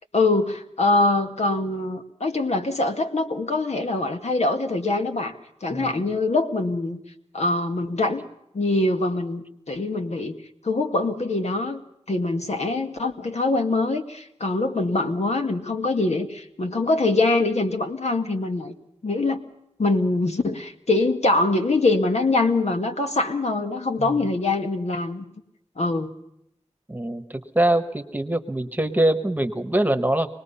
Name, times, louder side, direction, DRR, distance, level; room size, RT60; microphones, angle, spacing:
voice 1, 0.1-5.3 5.6-7.0 7.3-8.2 8.5-10.4 10.6-11.8 12.1-18.7 19.0-19.4 19.8-25.2 25.8-26.1, left 2 dB, 70° left, 4 dB, 1.9 m, -23 dB
voice 2, 26.9-30.3, right 1 dB, 15° right, 9 dB, 1.3 m, -23 dB
25.5 x 20.0 x 5.6 m, 0.78 s
wide cardioid pair, 85°, 12 cm